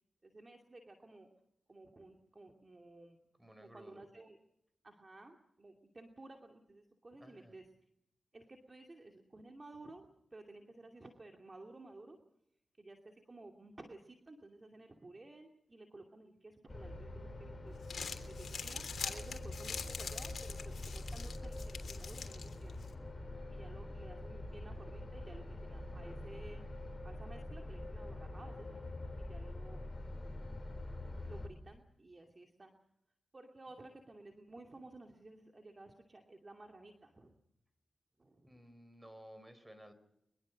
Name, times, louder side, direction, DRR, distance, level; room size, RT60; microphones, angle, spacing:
voice 1, 0.2-1.3 1.7-3.2 3.6-4.4 4.8-7.7 8.3-12.2 12.8-17.8 18.3-22.8 23.5-26.6 27.0-29.9 31.2-32.7 33.3-37.4 38.2-38.6, right 2 dB, 35° right, 2 dB, 2.6 m, -54 dB
voice 2, 3.4-4.0 7.2-7.5 38.4-39.9, equal, 15° right, 12 dB, 4.7 m, -56 dB
sound 1, 16.7-31.5, left 1 dB, 35° left, 4.4 m, -45 dB
Crumpling crinkling, 17.7-22.9, left 5 dB, 70° left, 3.3 m, -45 dB
24.0 x 22.0 x 6.4 m, 0.76 s
cardioid pair, 50°, 0 cm